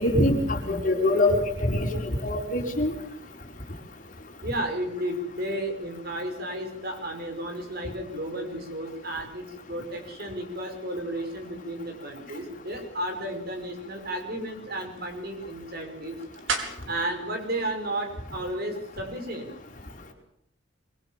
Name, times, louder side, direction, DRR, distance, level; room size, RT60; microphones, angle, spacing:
voice 1, 0.0-1.9 2.2-2.9, left 1 dB, 40° left, 2 dB, 4.8 m, -23 dB
voice 2, 4.4-16.2 16.9-19.5, right 1 dB, 50° right, 4 dB, 5.7 m, -33 dB
sound 1, 13.5-18.7, right 4 dB, 70° right, 4.7 m, -39 dB
24.5 x 24.5 x 7.4 m, 0.73 s
head